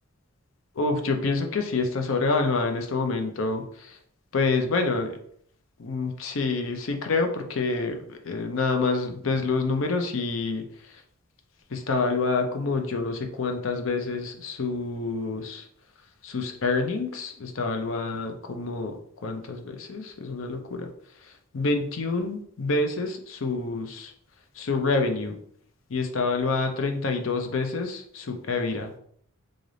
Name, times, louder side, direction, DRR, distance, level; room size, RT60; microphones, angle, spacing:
voice 1, 0.8-4.0 4.3-5.2 5.8-11.0 11.7-15.7 16.2-20.9 21.2-24.1 24.6-25.3 25.9-28.9, left 3 dB, 70° left, 5 dB, 0.6 m, -27 dB
3.3 x 2.5 x 3.8 m, 0.64 s
head